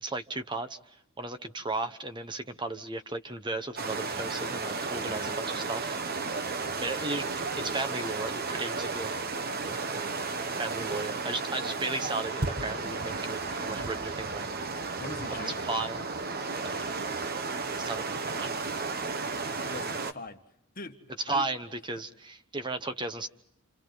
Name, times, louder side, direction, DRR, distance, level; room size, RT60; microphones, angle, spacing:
voice 1, 0.0-6.4 6.8-7.2 7.6-9.2 10.6-14.6 15.3-16.0 16.6-17.0 17.8-18.1 18.4-18.6 21.3-23.3, right 2 dB, 20° right, 8 dB, 1.1 m, -35 dB
sound 1, 3.8-20.1, right 4 dB, 45° right, 1.2 m, -33 dB
voice 2, 15.0-15.6 19.6-20.4 20.7-21.5, left 3 dB, 40° left, 6 dB, 1.6 m, -42 dB
29.5 x 27.5 x 4.0 m, 0.78 s
head